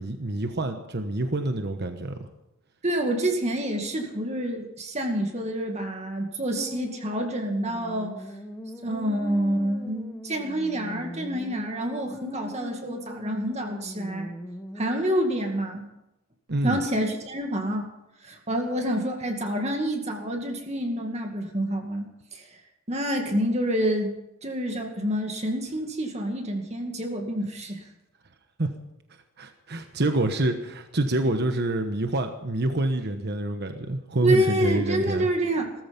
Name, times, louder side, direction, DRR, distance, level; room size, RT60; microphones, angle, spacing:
voice 1, 0.0-2.2 16.5-16.8 28.6-28.7 29.4-35.3, right 2 dB, 50° right, 6 dB, 1.2 m, -27 dB
voice 2, 2.8-8.2 8.8-14.3 14.8-15.8 16.6-17.9 18.2-22.5 22.9-24.1 24.4-27.8 34.2-35.7, right 1 dB, 30° right, 3 dB, 2.2 m, -28 dB
sound 1, 6.5-15.0, equal, 10° left, 1.3 m, -40 dB
18.5 x 14.0 x 5.3 m, 0.88 s
head